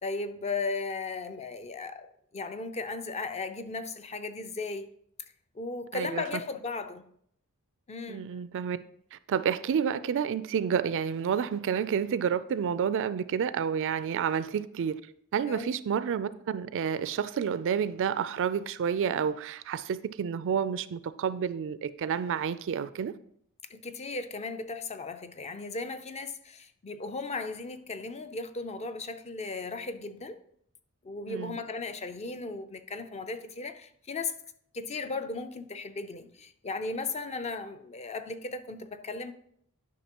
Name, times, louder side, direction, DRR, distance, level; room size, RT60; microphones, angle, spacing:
voice 1, 0.0-4.9 5.6-7.0 7.9-8.3 15.5-15.7 23.7-30.4 31.0-34.4 34.7-39.3, left 3 dB, 30° left, 0.5 m, -36 dB
voice 2, 8.1-8.8 9.3-15.0 15.3-23.1 31.3-31.5, right 7 dB, 60° right, 0.3 m, -29 dB
10.0 x 5.8 x 2.9 m
head